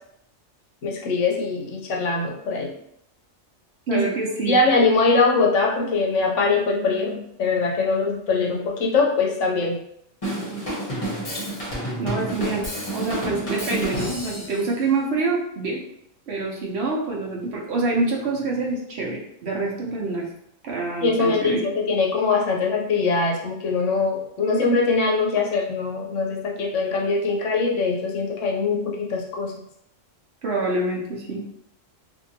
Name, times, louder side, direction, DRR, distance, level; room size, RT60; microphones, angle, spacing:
voice 1, 0.8-2.7 3.9-4.0 4.5-9.8 21.0-29.5, left 3 dB, 75° left, -1 dB, 1.0 m, -22 dB
voice 2, 3.9-4.6 12.0-12.7 12.9-15.8 16.3-20.3 20.6-21.6 30.4-31.4, right 3 dB, 60° right, -3 dB, 0.9 m, -26 dB
Drum kit / Drum, 10.2-14.6, right 1 dB, 35° left, 0.7 m, -29 dB
2.7 x 2.5 x 2.6 m, 0.74 s
omnidirectional pair, 1.4 m